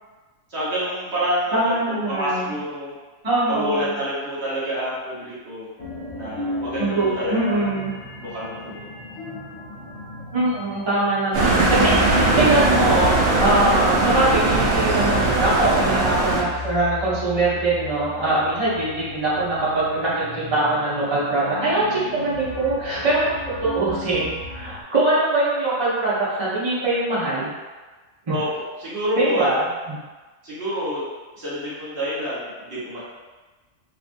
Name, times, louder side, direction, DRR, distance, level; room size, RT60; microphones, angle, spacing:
voice 1, 0.5-2.9 3.5-5.7 6.1-6.9 7.2-7.7 8.2-8.8 18.2-18.5 28.3-28.4 28.8-29.6 30.4-31.0 31.3-33.0, equal, 50° right, -10 dB, 1.3 m, -28 dB
voice 2, 1.5-2.5 3.2-4.0 6.8-7.9 10.3-27.5 28.3-28.4 29.2-29.6 29.9-30.0, right 2 dB, 30° right, -10 dB, 0.6 m, -22 dB
sound 1, 5.8-24.8, left 2 dB, 90° left, 1.2 m, -35 dB
sound 2, 11.3-16.4, right 2 dB, 75° right, 1.0 m, -19 dB
2.8 x 2.4 x 2.6 m, 1.3 s
omnidirectional pair, 1.4 m